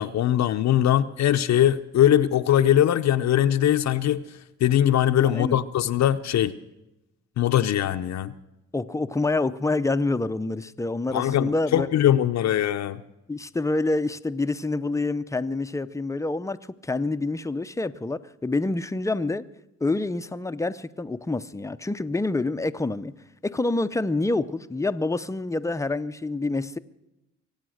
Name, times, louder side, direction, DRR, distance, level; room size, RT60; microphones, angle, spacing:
voice 1, 0.0-4.2 4.6-6.5 7.4-8.3 11.1-13.0, left 11 dB, 65° left, 9 dB, 0.7 m, -21 dB
voice 2, 5.2-5.6 8.7-11.9 13.3-19.5 19.8-23.1 23.4-26.8, left 2 dB, 10° left, 12 dB, 0.6 m, -27 dB
23.5 x 8.9 x 6.4 m, 0.93 s
cardioid pair, 90°, 30 cm